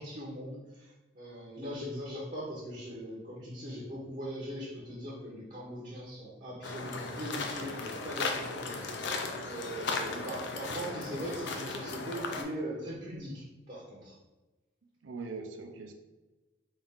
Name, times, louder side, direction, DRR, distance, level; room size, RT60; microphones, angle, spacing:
voice 1, 0.0-9.0 9.4-14.1, equal, 40° right, -5 dB, 0.8 m, -40 dB
voice 2, 1.6-2.0 9.9-10.3 15.0-15.9, right 4 dB, 80° right, 4 dB, 0.5 m, -43 dB
sound 1, 6.6-12.4, left 3 dB, 65° left, 0.5 m, -36 dB
4.1 x 2.4 x 3.5 m, 1.1 s
head